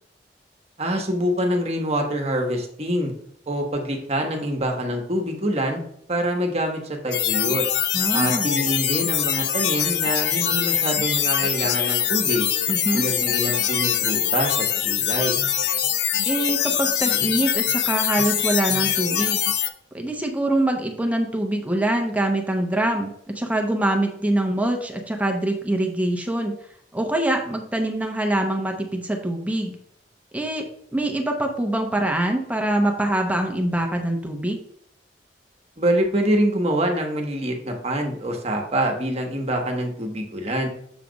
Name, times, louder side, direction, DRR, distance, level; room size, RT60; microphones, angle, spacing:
voice 1, 0.8-3.1 3.5-5.8 6.1-7.6 8.1-12.5 12.9-15.4 35.8-40.7, equal, 35° right, 2 dB, 1.2 m, -25 dB
sound 1, 7.1-19.7, left 9 dB, 75° left, 0.6 m, -23 dB
voice 2, 7.9-8.5 12.7-13.1 16.3-19.4 19.9-26.6 26.9-29.8 30.3-34.6, right 1 dB, 10° right, 3 dB, 0.9 m, -24 dB
7.2 x 3.3 x 5.1 m, 0.67 s
head